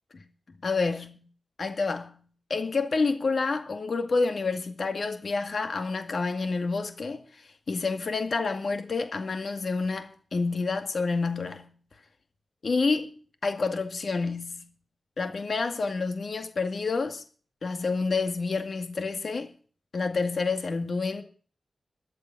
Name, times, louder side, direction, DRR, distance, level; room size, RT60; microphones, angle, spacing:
voice 1, 0.1-1.3 1.6-2.2 2.5-7.2 7.7-11.7 12.6-13.1 13.4-14.7 15.2-17.2 17.6-19.5 19.9-21.2, left 4 dB, 60° left, 2.0 m, -28 dB
14.0 x 7.0 x 9.1 m
wide cardioid pair, 80°, 0 cm